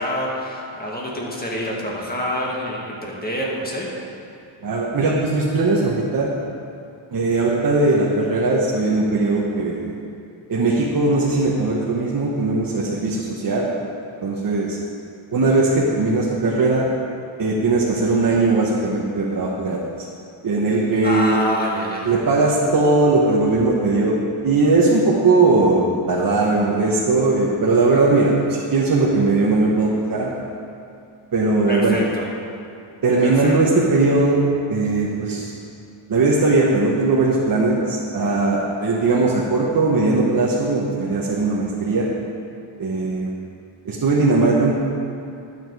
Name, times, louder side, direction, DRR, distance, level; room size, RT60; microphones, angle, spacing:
voice 1, 0.0-3.9 21.0-22.1 31.7-32.3 33.2-33.5, equal, 20° left, -3 dB, 1.9 m, -26 dB
voice 2, 4.6-6.3 7.1-9.9 10.5-13.7 14.2-14.8 15.3-16.9 17.4-19.8 20.4-21.3 22.0-30.3 31.3-32.0 33.0-35.5 36.1-42.1 42.8-43.3 43.8-44.7, right 3 dB, 40° right, -5 dB, 1.2 m, -19 dB
11.5 x 7.3 x 4.8 m, 2.5 s
wide cardioid pair, 120°, 50 cm